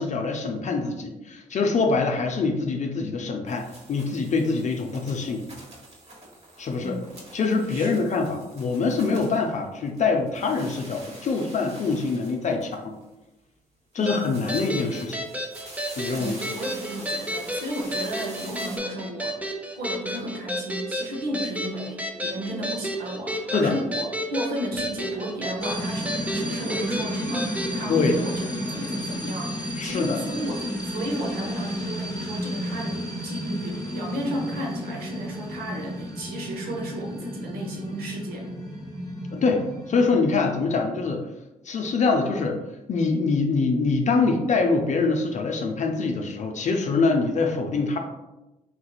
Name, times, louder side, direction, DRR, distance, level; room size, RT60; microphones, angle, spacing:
voice 1, 0.0-5.5 6.6-7.0 7.3-13.0 13.9-15.3 16.0-16.4 23.5-23.7 27.9-28.1 29.8-30.2 39.3-41.2 41.6-42.6 42.9-48.0, left 4 dB, 50° left, 3 dB, 0.5 m, -24 dB
sound 1, 3.5-10.0 10.3-13.1 13.9-18.8, right 1 dB, 45° right, 1.2 m, -45 dB
voice 2, 6.8-7.1 7.7-7.9 14.0-14.4 16.2-38.5, right 1 dB, 75° right, 0 dB, 0.9 m, -33 dB
sound 2, 14.1-27.7, equal, 10° right, 0.6 m, -32 dB
sound 3, 25.6-40.1, equal, 25° left, 1.0 m, -32 dB
3.6 x 2.8 x 2.3 m, 0.99 s
hypercardioid pair, 50°, 16 cm